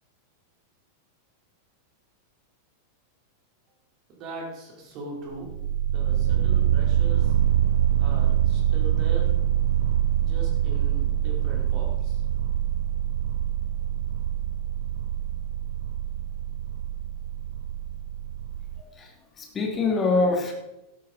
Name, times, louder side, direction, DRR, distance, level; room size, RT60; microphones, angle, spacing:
voice 1, 4.1-7.4 8.0-9.4 10.2-12.2, right 2 dB, 40° right, -1 dB, 4.4 m, -40 dB
sound 1, 5.3-18.8, right 10 dB, 60° right, 0.5 m, -25 dB
voice 2, 18.8-19.1 19.4-20.5, left 3 dB, 20° left, 2 dB, 3.1 m, -24 dB
12.5 x 12.0 x 4.4 m, 0.94 s
figure-of-eight pair, 90°, 0 cm